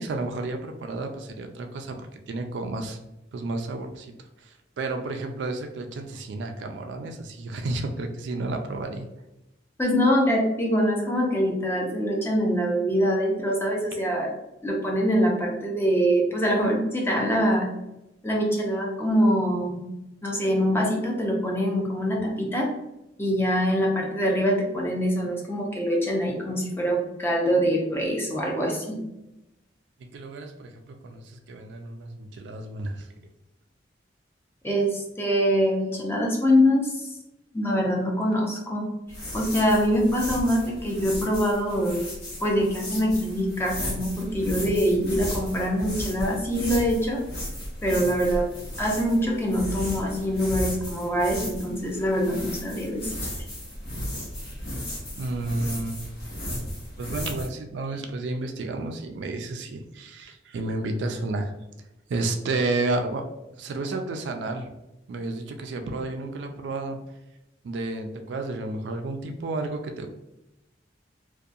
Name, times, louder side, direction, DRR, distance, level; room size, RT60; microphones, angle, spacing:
voice 1, 0.0-3.0 3.3-4.1 4.4-9.1 30.1-33.1 55.1-56.0 57.0-61.5 62.1-63.2 63.6-64.7 65.1-67.0 67.6-70.1, right 2 dB, 70° right, 5 dB, 0.3 m, -31 dB
voice 2, 9.8-14.3 14.6-17.7 18.2-19.8 20.2-22.7 23.2-29.0 34.6-37.1 37.5-38.9 39.3-42.0 42.4-47.2 47.8-48.5 48.8-53.3, equal, 15° left, -1 dB, 0.4 m, -24 dB
sound 1, 39.1-57.5, equal, 55° left, 1.0 m, -35 dB
2.7 x 2.2 x 2.4 m, 0.94 s
head